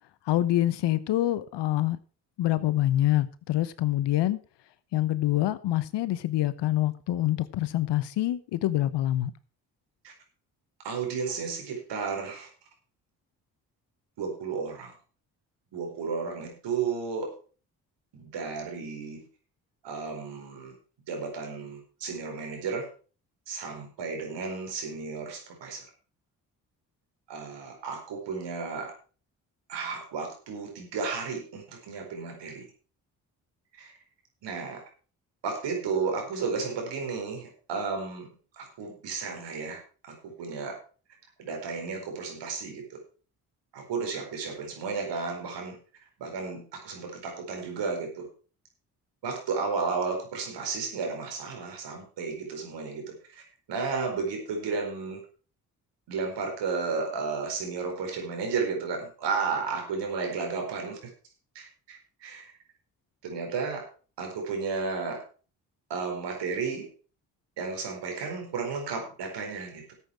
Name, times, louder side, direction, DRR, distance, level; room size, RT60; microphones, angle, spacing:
voice 1, 0.3-2.0 2.4-4.4 4.9-9.3, left 14 dB, 70° left, 1.0 m, -26 dB
voice 2, 10.8-12.5 14.2-14.9 15.7-17.3 18.1-19.3 19.8-20.8 21.1-22.9 23.5-25.8 27.3-28.9 29.7-32.6 33.8-33.9 34.4-34.8 35.4-38.3 38.5-39.8 40.1-40.8 41.4-43.0 43.7-45.8 46.2-48.3 49.2-53.1 53.7-55.2 56.1-61.0 61.5-62.5 63.2-63.9 64.2-65.2 65.9-66.9 67.6-69.9, right 5 dB, 70° right, 4.6 m, -33 dB
13.5 x 8.5 x 4.7 m
hypercardioid pair, 45°, 44 cm